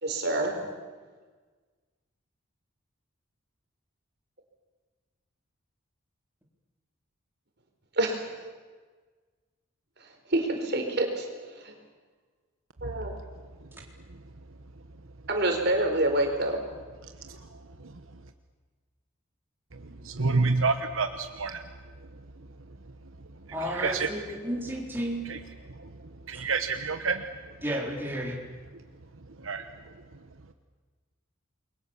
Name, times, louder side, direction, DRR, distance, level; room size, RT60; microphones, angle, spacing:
voice 1, 0.0-0.5 8.0-8.2 10.3-11.3 11.6-11.7 12.8-13.1 15.3-16.6, right 1 dB, 50° right, 3 dB, 4.7 m, -26 dB
voice 2, 17.0-18.0 19.7-21.6 23.5-24.1 25.3-25.4 25.7-27.6 29.4-30.2, right 4 dB, 70° right, 7 dB, 1.2 m, -30 dB
voice 3, 23.5-25.2 27.6-28.4, equal, 10° right, -1 dB, 4.0 m, -32 dB
29.0 x 22.5 x 7.3 m, 1.4 s
head